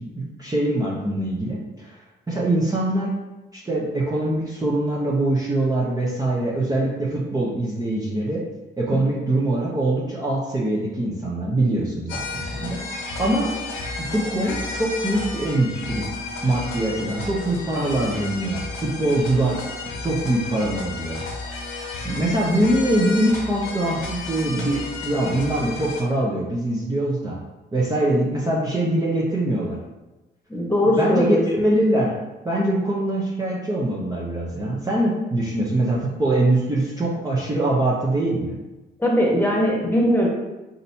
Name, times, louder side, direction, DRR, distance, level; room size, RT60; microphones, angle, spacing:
voice 1, 0.0-2.0 2.3-3.2 3.5-8.4 8.8-12.8 13.2-13.5 14.0-16.0 16.4-19.6 20.0-21.2 22.0-27.4 27.7-29.8 30.9-32.2 32.4-38.6, right 1 dB, 20° right, -5 dB, 0.8 m, -23 dB
sound 1, 12.1-26.0, left 3 dB, 85° left, 1.0 m, -32 dB
voice 2, 30.5-31.4 39.0-40.3, equal, 10° left, -3 dB, 1.3 m, -19 dB
4.2 x 3.9 x 2.7 m, 1.1 s
cardioid pair, 90°, 20 cm